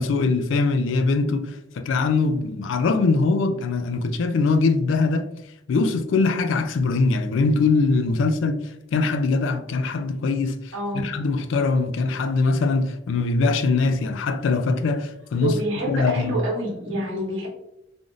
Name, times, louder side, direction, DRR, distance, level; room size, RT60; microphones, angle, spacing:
voice 1, 0.0-5.3 5.7-15.6 15.9-16.4, left 3 dB, 70° left, 0.3 m, -22 dB
voice 2, 10.7-11.1 15.4-17.5, right 1 dB, 85° right, 1.2 m, -27 dB
3.4 x 2.5 x 2.4 m
head